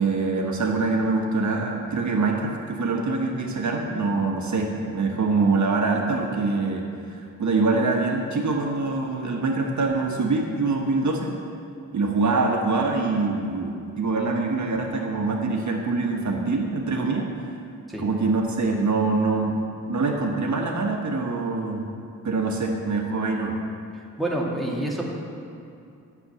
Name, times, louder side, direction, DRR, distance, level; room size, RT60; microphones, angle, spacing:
voice 1, 0.0-6.8 7.2-11.3 11.9-17.3 18.0-19.6 19.9-21.8 22.2-23.5, right 3 dB, 60° right, 1 dB, 1.4 m, -24 dB
voice 2, 24.2-25.1, right 1 dB, ahead, -3 dB, 2.2 m, -27 dB
9.9 x 6.9 x 8.5 m, 2.5 s
cardioid pair, 75°, 33 cm